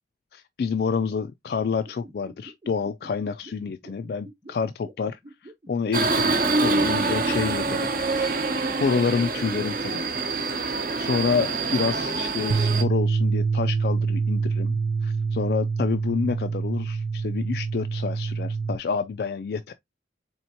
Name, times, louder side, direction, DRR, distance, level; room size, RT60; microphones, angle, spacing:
voice 1, 0.3-8.4 8.8-10.1 10.6-19.7, left 5 dB, 60° left, 0.3 m, -28 dB
sound 1, 1.8-7.7, right 1 dB, 25° right, 1.0 m, -45 dB
Subway metro underground, 5.9-12.8, right 3 dB, 50° right, 0.8 m, -25 dB
sound 2, 12.5-18.8, right 4 dB, 80° right, 0.5 m, -26 dB
4.4 x 3.4 x 2.7 m
head